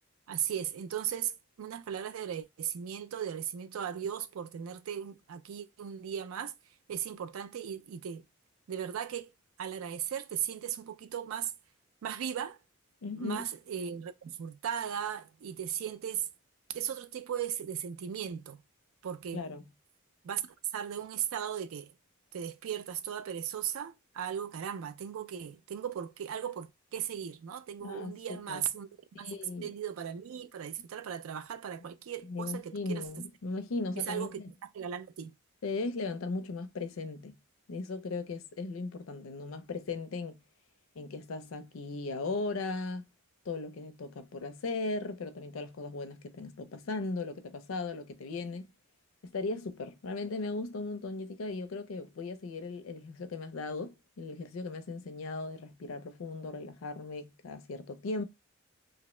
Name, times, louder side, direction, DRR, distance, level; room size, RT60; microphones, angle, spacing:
voice 1, 0.3-6.5 6.9-8.2 8.7-9.3 9.6-11.5 12.0-12.6 13.1-16.3 16.7-18.6 19.0-19.4 20.2-20.4 20.7-21.9 22.3-29.3 29.6-33.1 34.0-35.3, right 9 dB, 90° right, 0.4 m, -37 dB
voice 2, 13.0-13.5 19.3-19.6 27.8-28.6 29.1-29.7 32.2-34.5 35.6-37.3 37.7-40.4 41.0-43.0 43.5-48.7 49.2-58.2, left 3 dB, 80° left, 0.5 m, -37 dB
2.8 x 2.0 x 3.0 m
head